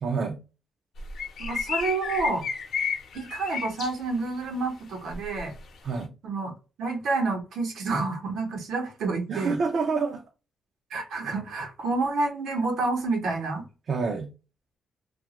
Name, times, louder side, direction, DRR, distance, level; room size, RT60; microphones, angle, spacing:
voice 1, 0.0-0.4 5.8-6.1 9.3-10.2 13.9-14.3, right 4 dB, 45° right, 0.4 m, -27 dB
sound 1, 1.0-3.9 5.1-5.6, left 6 dB, 65° left, 0.7 m, -32 dB
voice 2, 1.4-2.4 3.1-5.5 6.2-6.5 6.8-9.6 10.9-13.6, right 3 dB, 75° right, 0.9 m, -29 dB
2.8 x 2.3 x 2.9 m
cardioid pair, 155°, 0 cm